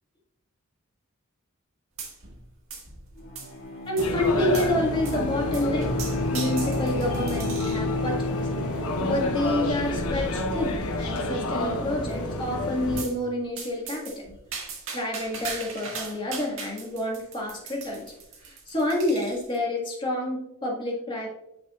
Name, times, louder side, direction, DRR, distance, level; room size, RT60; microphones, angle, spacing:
sound 1, 2.0-2.4 2.7-3.6 4.0-4.1 4.5-4.7 5.0-5.2 5.5-7.9 8.5-8.8 9.5-9.6 9.9-10.0 10.3-10.4 10.9-11.3 13.0-13.2 13.6-19.6, right 4 dB, 60° right, 1.8 m, -39 dB
Bowed string instrument, 3.2-10.9, left 2 dB, 55° left, 2.4 m, -32 dB
voice 1, 3.9-5.9 6.3-8.3 9.0-14.3 14.9-18.1 18.4-21.3, left 1 dB, 20° left, -2 dB, 1.8 m, -28 dB
sound 2, 4.0-13.0, left 1 dB, 80° left, 1.0 m, -30 dB
10.5 x 5.8 x 2.5 m, 0.85 s
head